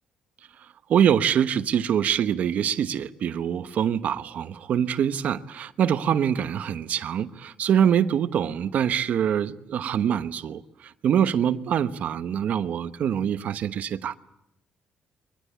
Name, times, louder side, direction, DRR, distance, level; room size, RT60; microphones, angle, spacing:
voice 1, 0.9-14.2, right 9 dB, 65° right, 1.1 m, -24 dB
24.0 x 20.5 x 8.2 m
cardioid pair, 85°, 3 cm